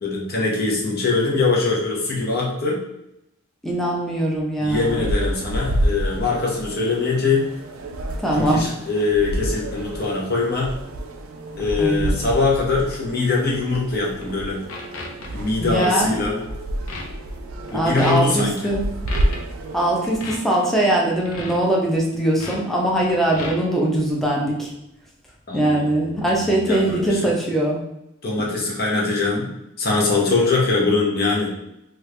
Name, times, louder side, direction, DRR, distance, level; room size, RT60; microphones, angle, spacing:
voice 1, 0.0-2.8 4.6-7.5 8.3-10.7 11.6-14.6 15.3-16.4 17.7-18.8 25.5-26.2 26.6-27.3 28.2-29.5 29.8-31.5, left 3 dB, 45° left, -2 dB, 0.8 m, -22 dB
voice 2, 3.6-5.0 8.2-8.6 11.8-12.3 15.6-16.2 17.7-18.9 19.7-24.7 25.5-27.8, right 1 dB, ahead, -3 dB, 0.6 m, -21 dB
sound 1, 4.7-20.3, right 1 dB, 70° right, 0.4 m, -29 dB
sound 2, 14.1-14.3 14.7-15.3 15.8-15.9 16.3-16.5 16.9-17.0 17.7-17.8 18.0-18.3 19.1-19.4 20.0-20.4 21.2-21.6 22.4-22.6 22.9-23.6, left 2 dB, 90° left, 0.6 m, -33 dB
3.1 x 2.4 x 3.2 m, 0.85 s
head